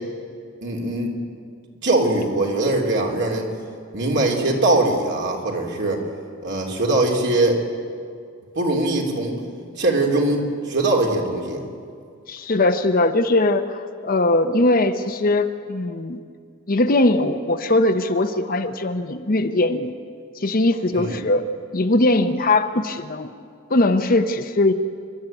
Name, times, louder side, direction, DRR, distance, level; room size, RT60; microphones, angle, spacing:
voice 1, 0.6-1.1 1.8-3.5 3.9-6.0 6.4-7.6 8.5-9.4 9.8-11.6 20.9-21.2, right 2 dB, 55° right, 0 dB, 3.3 m, -21 dB
voice 2, 12.3-16.2 16.7-19.9 20.4-21.4 21.7-23.3 23.7-24.7, left 2 dB, 45° left, 8 dB, 0.9 m, -20 dB
27.5 x 12.0 x 9.2 m, 2.2 s
head